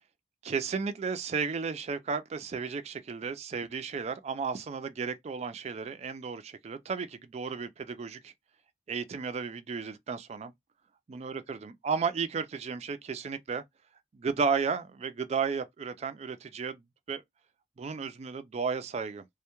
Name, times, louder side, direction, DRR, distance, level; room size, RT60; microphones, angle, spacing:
voice 1, 0.4-8.3 8.9-10.5 11.1-13.6 14.1-17.2 17.8-19.3, right 5 dB, 35° right, 0.3 m, -33 dB
2.1 x 2.1 x 2.9 m
head